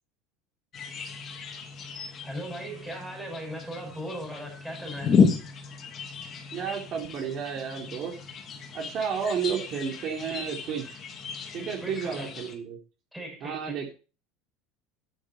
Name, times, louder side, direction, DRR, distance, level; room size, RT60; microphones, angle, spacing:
sound 1, 0.7-12.6, left 6 dB, 30° left, 2.5 m, -32 dB
voice 1, 2.2-5.1 11.8-12.3 13.1-13.9, right 1 dB, ahead, 5.9 m, -38 dB
voice 2, 6.5-8.2 8.7-11.0 11.5-12.8 13.4-13.9, right 7 dB, 40° right, 3.6 m, -32 dB
10.5 x 10.0 x 4.5 m
cardioid pair, 155°, 0 cm